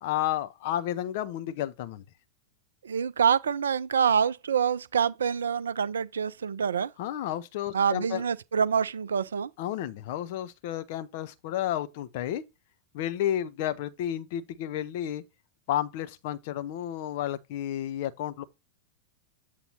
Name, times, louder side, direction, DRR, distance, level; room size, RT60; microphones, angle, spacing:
voice 1, 0.0-2.0 7.0-8.2 9.6-12.4 12.9-15.2 15.7-18.4, left 12 dB, 50° left, 0.8 m, -31 dB
voice 2, 2.8-6.9 7.7-9.5, right 7 dB, 70° right, 0.4 m, -26 dB
8.1 x 2.7 x 5.6 m
figure-of-eight pair, 90°, 0 cm